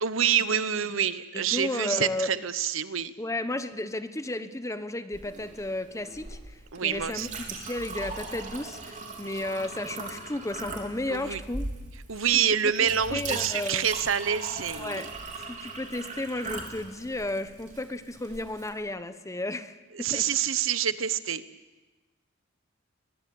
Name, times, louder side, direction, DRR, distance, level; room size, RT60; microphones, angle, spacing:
voice 1, 0.0-3.1 6.7-7.3 11.1-11.4 12.1-15.1 19.9-21.4, right 8 dB, 75° right, 14 dB, 1.0 m, -27 dB
voice 2, 1.3-2.3 3.2-11.7 12.3-12.4 12.8-13.9 14.8-15.1 15.5-20.3, left 2 dB, 15° left, 11 dB, 1.2 m, -33 dB
Chink clink, 5.1-18.7, right 3 dB, 40° right, 3.9 m, -40 dB
22.0 x 22.0 x 8.6 m, 1.2 s
head